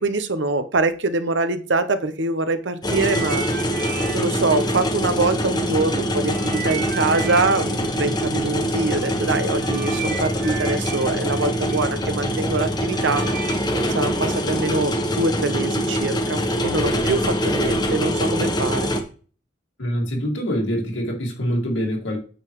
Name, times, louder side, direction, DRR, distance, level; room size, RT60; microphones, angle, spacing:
voice 1, 0.0-3.5 4.1-13.2 13.9-18.9, right 3 dB, 70° right, 0.9 m, -24 dB
sound 1, 2.8-19.0, equal, 20° left, 1.0 m, -24 dB
sound 2, 2.8-5.8 6.2-15.2 16.0-16.1, right 7 dB, 40° right, 1.2 m, -36 dB
voice 2, 19.8-22.2, equal, 85° left, 2.2 m, -25 dB
8.9 x 7.0 x 3.2 m
head